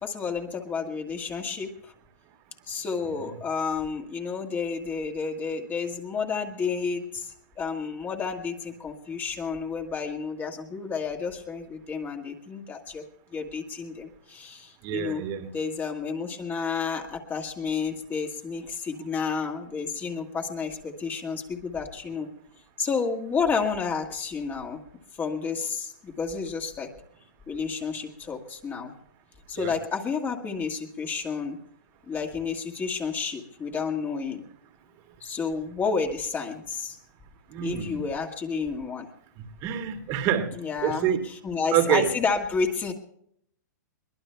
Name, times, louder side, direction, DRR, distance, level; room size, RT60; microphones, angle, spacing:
voice 1, 0.0-1.9 2.7-13.0 13.3-15.2 15.5-22.3 22.8-24.8 25.2-26.9 27.5-28.9 29.5-31.6 32.1-34.4 35.2-37.0 37.6-39.1 40.6-42.9, left 5 dB, 20° left, 1 dB, 1.7 m, -31 dB
voice 2, 14.8-15.5 29.6-29.7 37.5-38.0 39.6-41.3 41.7-42.1, right 10 dB, 40° right, 6 dB, 2.2 m, -27 dB
23.0 x 20.0 x 2.3 m, 0.68 s
hypercardioid pair, 130°, 10 cm